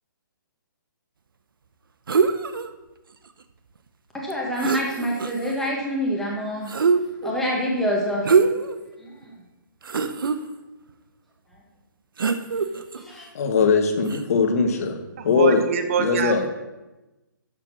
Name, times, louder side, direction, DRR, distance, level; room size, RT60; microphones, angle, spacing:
sound 1, 2.1-2.7 4.3-4.4 4.6-5.5 6.7-7.3 8.2-8.8 9.2-9.3 9.8-10.4 12.2-13.0 14.0-14.2, right 5 dB, 85° right, 0.7 m, -22 dB
voice 1, 4.1-6.7 7.2-8.3 9.0-9.3 13.0-13.2, equal, 5° left, 1.5 m, -26 dB
voice 2, 13.3-15.0 15.2-15.7 16.0-16.5, left 5 dB, 45° left, 1.2 m, -20 dB
voice 3, 15.4-16.3, right 7 dB, 40° right, 0.9 m, -24 dB
12.0 x 4.2 x 6.1 m
hypercardioid pair, 160°, 11 cm